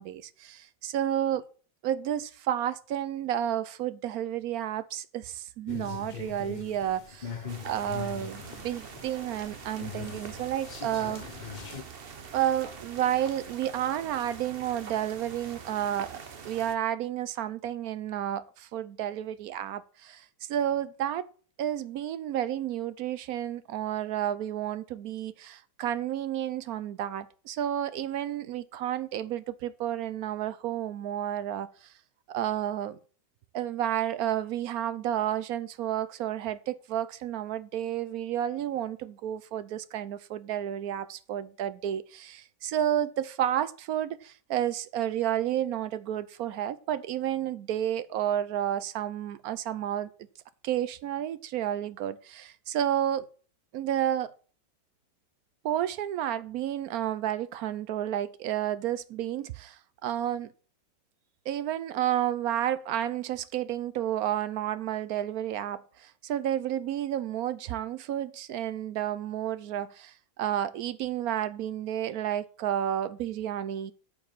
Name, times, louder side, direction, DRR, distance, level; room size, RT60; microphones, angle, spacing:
voice 1, 0.0-1.4 1.8-11.2 12.3-21.3 21.6-31.7 32.3-33.0 33.5-50.1 50.6-53.3 53.7-54.3 55.6-60.5 61.5-73.9, right 11 dB, 65° right, 0.9 m, -31 dB
sound 1, 5.7-11.8, left 7 dB, 45° left, 0.6 m, -41 dB
sound 2, 7.5-16.7, right 6 dB, 40° right, 0.9 m, -45 dB
8.9 x 5.2 x 7.4 m
omnidirectional pair, 2.0 m